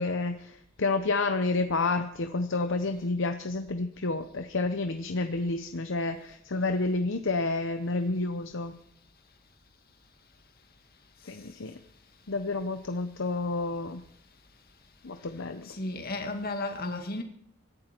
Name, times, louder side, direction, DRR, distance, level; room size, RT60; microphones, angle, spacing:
voice 1, 0.0-8.7 11.3-11.7 12.3-14.0 15.0-15.7, left 3 dB, 60° left, 0.9 m, -30 dB
voice 2, 15.7-17.2, left 2 dB, 45° left, 2.2 m, -33 dB
24.5 x 12.0 x 4.5 m
head